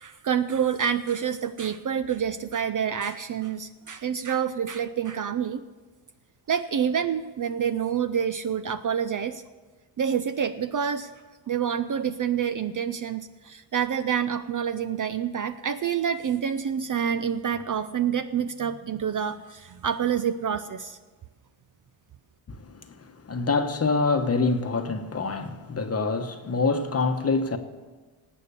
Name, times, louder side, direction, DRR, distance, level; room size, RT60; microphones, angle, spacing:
voice 1, 0.0-5.6 6.5-9.4 10.0-11.1 11.5-21.0, right 8 dB, 40° right, 0.5 m, -27 dB
voice 2, 22.5-27.6, left 4 dB, 30° left, 1.0 m, -26 dB
18.5 x 8.3 x 6.8 m
cardioid pair, 135°, 49 cm